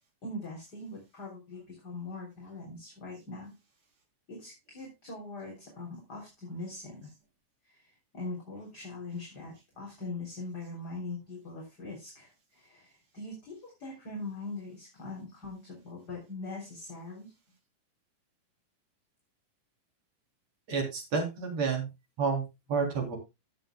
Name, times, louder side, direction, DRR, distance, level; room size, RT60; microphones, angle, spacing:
voice 1, 0.2-3.6 4.3-7.1 7.7-17.3, left 2 dB, 30° left, -2 dB, 3.6 m, -42 dB
voice 2, 20.7-21.9 22.2-22.4 22.7-23.2, right 5 dB, 50° right, 2 dB, 4.4 m, -29 dB
17.0 x 8.0 x 2.2 m, 0.24 s
omnidirectional pair, 4.0 m